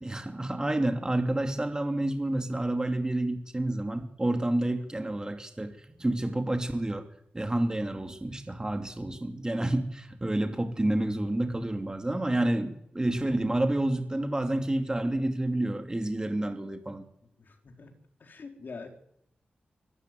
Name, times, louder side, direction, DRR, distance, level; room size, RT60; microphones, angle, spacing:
voice 1, 0.0-5.7 6.0-7.0 7.3-17.0, right 1 dB, 20° right, 6 dB, 3.0 m, -29 dB
voice 2, 17.4-17.9 18.2-18.9, left 4 dB, 65° left, 4 dB, 4.4 m, -44 dB
24.0 x 14.0 x 9.5 m, 0.74 s
cardioid pair, 60°, 3 cm